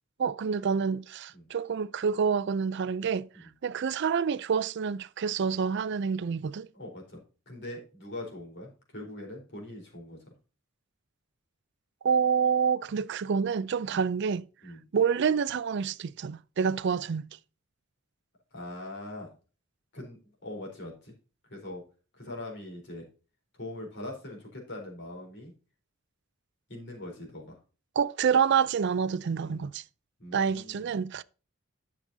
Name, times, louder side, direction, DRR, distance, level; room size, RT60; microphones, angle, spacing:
voice 1, 0.2-6.7 12.0-14.5 14.9-17.3 28.0-29.8 30.3-31.2, right 6 dB, 55° right, 0.4 m, -28 dB
voice 2, 6.7-10.2 13.9-14.0 14.6-14.8 18.5-19.3 19.9-21.1 21.5-21.8 22.2-23.1 23.5-25.5 26.7-27.5 29.4-29.6 30.2-30.9, left 1 dB, 55° left, 4.1 m, -42 dB
11.0 x 7.5 x 2.7 m
head